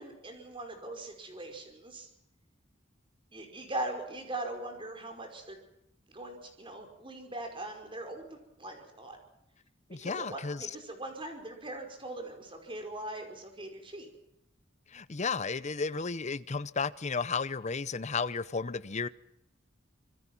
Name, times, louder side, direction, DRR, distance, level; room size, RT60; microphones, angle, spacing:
voice 1, 0.0-2.1 3.3-5.6 6.1-9.2 10.0-14.1, right 1 dB, 25° right, 4 dB, 5.1 m, -41 dB
voice 2, 9.9-10.6 14.9-19.1, left 4 dB, 35° left, 16 dB, 0.8 m, -33 dB
26.5 x 21.5 x 6.1 m, 0.84 s
head